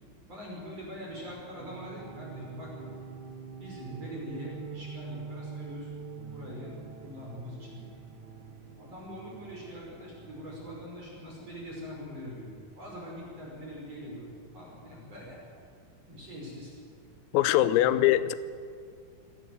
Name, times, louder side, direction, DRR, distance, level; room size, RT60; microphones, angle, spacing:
voice 1, 0.3-3.0 3.6-5.9 6.3-7.9 8.8-15.4 16.1-16.7 17.5-18.0, equal, 30° right, -3 dB, 6.0 m, -43 dB
sound 1, 1.6-10.7, right 5 dB, 65° right, 1.9 m, -45 dB
voice 2, 17.3-18.4, left 14 dB, 90° left, 14 dB, 3.4 m, -22 dB
26.0 x 17.5 x 7.9 m, 2.2 s
omnidirectional pair, 5.9 m